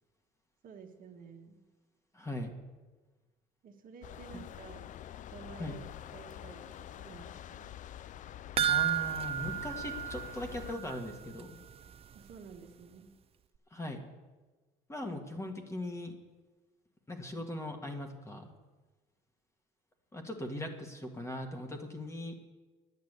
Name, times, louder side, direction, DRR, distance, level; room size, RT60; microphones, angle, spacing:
voice 1, 0.6-1.6 3.6-4.9 5.3-5.8 6.1-7.7 12.1-13.1, right 6 dB, 55° right, 3 dB, 1.5 m, -51 dB
voice 2, 2.1-2.5 5.6-5.8 8.7-11.6 13.7-14.0 14.9-16.2 17.1-18.5 20.1-22.3, left 1 dB, 15° left, 4 dB, 1.7 m, -39 dB
sound 1, 4.0-10.8, left 11 dB, 50° left, 0.4 m, -46 dB
sound 2, 8.6-11.1 11.4-11.5 11.9-12.0, right 9 dB, 35° right, 0.5 m, -32 dB
10.5 x 9.6 x 8.1 m, 1.3 s
cardioid pair, 110°, 17 cm